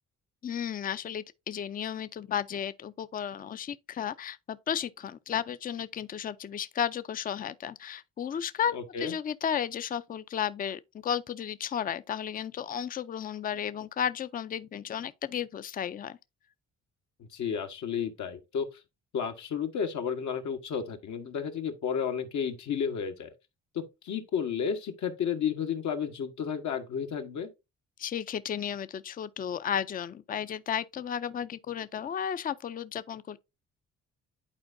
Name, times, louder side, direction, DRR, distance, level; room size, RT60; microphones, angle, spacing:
voice 1, 0.4-16.2 28.0-33.4, left 8 dB, 30° left, 0.4 m, -33 dB
voice 2, 8.7-9.1 17.2-18.8 19.1-23.3 23.7-27.5, left 7 dB, 70° left, 1.3 m, -32 dB
10.5 x 4.4 x 2.6 m
cardioid pair, 90°, 30 cm